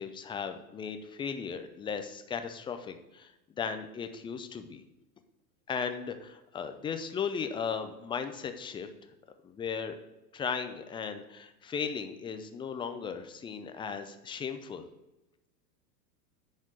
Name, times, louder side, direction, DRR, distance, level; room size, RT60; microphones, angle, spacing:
voice 1, 0.0-3.3 3.6-4.8 5.7-8.9 9.4-10.0 10.3-14.9, left 6 dB, 10° left, 7 dB, 0.4 m, -36 dB
10.0 x 4.2 x 6.0 m, 1.0 s
hypercardioid pair, 100°, 50 cm